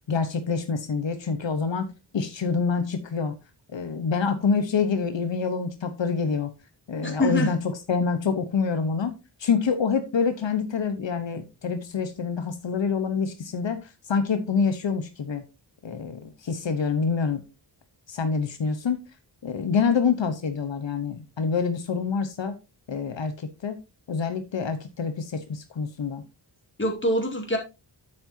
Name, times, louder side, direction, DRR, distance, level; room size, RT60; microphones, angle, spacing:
voice 1, 0.1-1.9 2.1-3.4 3.7-6.5 6.9-9.1 9.4-15.4 15.8-17.4 18.1-19.0 19.4-22.6 22.9-23.8 24.1-26.2, left 5 dB, 85° left, 1.1 m, -26 dB
voice 2, 7.0-7.5 26.8-27.6, equal, 25° left, 2.6 m, -24 dB
9.5 x 7.8 x 2.7 m
wide cardioid pair, 110°, 44 cm